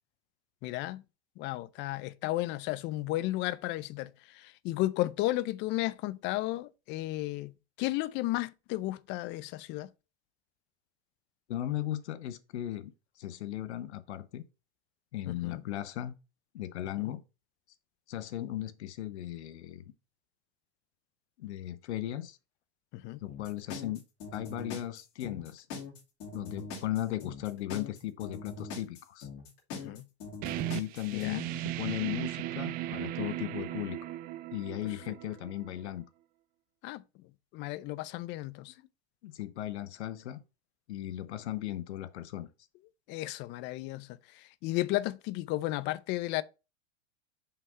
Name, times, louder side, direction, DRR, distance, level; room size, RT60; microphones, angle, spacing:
voice 1, 0.6-1.0 1.4-7.5 7.8-9.9 15.3-15.6 17.0-17.1 22.9-23.2 29.7-30.0 31.1-31.4 36.8-37.0 37.5-38.7 43.1-44.1 44.6-46.4, left 17 dB, 35° left, 0.4 m, -33 dB
voice 2, 11.5-12.9 13.2-14.4 15.1-16.1 16.5-17.2 18.1-19.8 21.4-22.4 23.2-24.0 24.3-25.7 26.3-29.3 30.7-34.0 34.5-36.1 39.2-40.4 40.9-42.5, left 13 dB, 85° left, 0.9 m, -37 dB
sound 1, 23.3-31.3, left 4 dB, 55° left, 2.7 m, -42 dB
sound 2, 30.4-35.9, right 15 dB, 30° right, 0.3 m, -37 dB
5.6 x 3.6 x 5.4 m
supercardioid pair, 130°, 33 cm